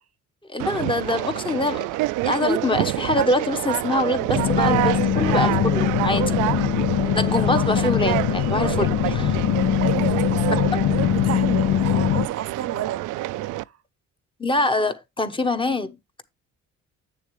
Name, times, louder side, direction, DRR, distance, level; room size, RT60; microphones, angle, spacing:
voice 1, 0.5-1.9 2.2-6.4 7.0-9.4 14.4-16.2, left 2 dB, 15° left, 1.1 m, -24 dB
Conversation, 0.6-13.6, right 17 dB, 85° right, 0.5 m, -27 dB
sound 1, 4.3-12.3, left 11 dB, 70° left, 0.5 m, -22 dB
voice 2, 9.5-13.0 13.5-13.7, right 9 dB, 55° right, 0.7 m, -31 dB
9.0 x 7.0 x 3.2 m
cardioid pair, 90°, 30 cm